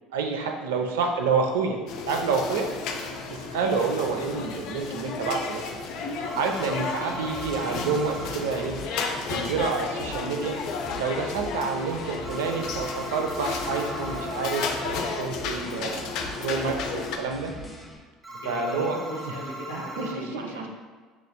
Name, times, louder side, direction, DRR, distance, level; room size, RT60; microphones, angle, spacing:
voice 1, 0.1-1.8 2.1-2.7 3.3-5.6 6.3-8.8 9.3-10.6 11.0-16.1 16.4-17.5 18.5-19.0 19.7-20.1 20.3-20.7, right 4 dB, 75° right, 3 dB, 0.4 m, -28 dB
sound 1, 1.9-17.2, left 4 dB, 60° left, 0.4 m, -33 dB
sound 2, 6.2-8.3 12.2-14.3 18.2-20.1, right 1 dB, 10° right, 1.1 m, -39 dB
sound 3, 7.3-18.0, left 2 dB, 15° left, 0.7 m, -43 dB
voice 2, 18.3-20.7, left 1 dB, 80° left, -4 dB, 1.0 m, -38 dB
6.5 x 2.5 x 2.2 m, 1.4 s
hypercardioid pair, 65°, 0 cm